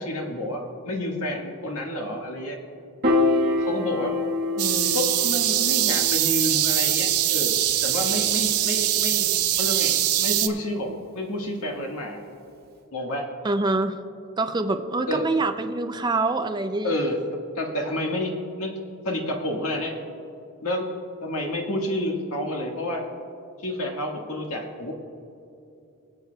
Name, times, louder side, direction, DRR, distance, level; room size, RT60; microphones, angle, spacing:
voice 1, 0.0-2.6 3.6-4.2 4.5-7.5 7.8-9.3 9.6-12.2 12.9-13.3 15.1-15.2 16.8-17.2 17.5-18.8 19.0-20.0 20.6-20.9 21.2-23.1 23.6-24.9, left 1 dB, 85° left, 1 dB, 1.7 m, -29 dB
Piano, 3.0-9.4, left 2 dB, 45° right, 1.4 m, -28 dB
sound 1, 4.6-10.5, right 13 dB, 90° right, 0.6 m, -22 dB
voice 2, 13.4-14.0 14.4-17.0, right 3 dB, 20° right, 7 dB, 0.4 m, -25 dB
24.0 x 8.3 x 2.3 m, 2.7 s
head